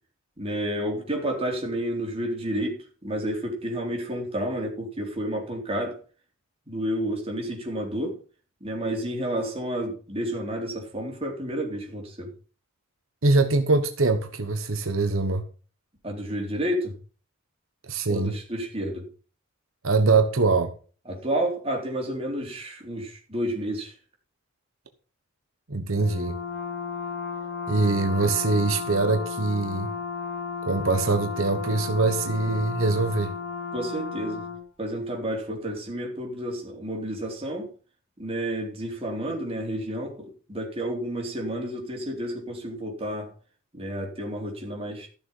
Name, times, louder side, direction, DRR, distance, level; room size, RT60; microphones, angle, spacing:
voice 1, 0.4-6.0 6.7-8.2 8.6-12.3 16.0-17.0 18.1-19.1 21.1-23.9 33.7-34.4 34.8-37.7 38.2-43.3 43.7-45.1, right 1 dB, 30° right, 3.8 m, -30 dB
voice 2, 13.2-15.5 17.9-18.4 19.8-20.7 25.7-26.4 27.7-29.9 30.6-33.3, right 3 dB, 80° right, 1.2 m, -23 dB
Brass instrument, 25.9-34.6, left 5 dB, 55° left, 5.5 m, -33 dB
14.0 x 7.0 x 5.5 m
head